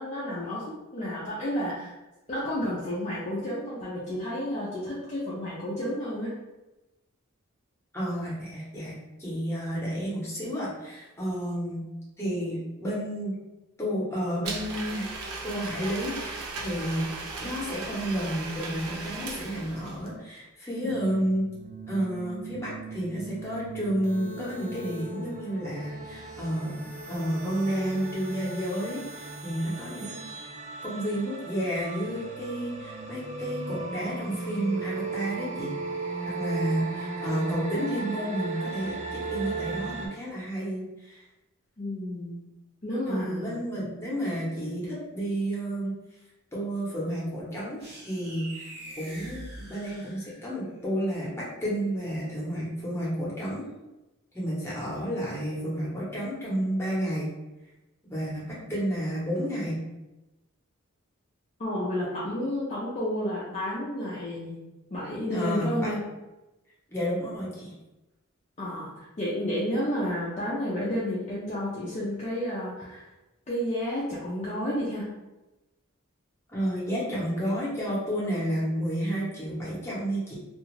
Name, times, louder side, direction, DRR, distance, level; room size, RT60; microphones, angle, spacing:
voice 1, 0.0-1.9 2.3-6.4 20.8-21.4 41.8-42.4 42.8-43.6 61.6-64.6 64.9-66.0 68.6-68.9 69.2-73.1 73.5-75.1, equal, 30° left, -7 dB, 0.5 m, -31 dB
voice 2, 7.9-11.8 12.2-13.3 13.8-15.1 15.4-17.1 17.4-21.5 21.9-26.8 27.1-30.2 30.8-35.8 36.2-41.2 43.0-45.9 46.5-48.7 49.0-53.6 54.3-57.3 58.0-59.8 65.3-65.9 66.9-67.7 76.5-80.3, equal, 10° left, -7 dB, 0.9 m, -31 dB
Domestic sounds home sounds, 14.4-20.1, right 3 dB, 90° right, 0.5 m, -37 dB
sound 1, 20.9-40.1, right 3 dB, 30° right, 0.4 m, -37 dB
sound 2, 47.8-50.7, right 1 dB, 50° right, 0.9 m, -44 dB
2.4 x 2.3 x 3.1 m, 1.0 s
head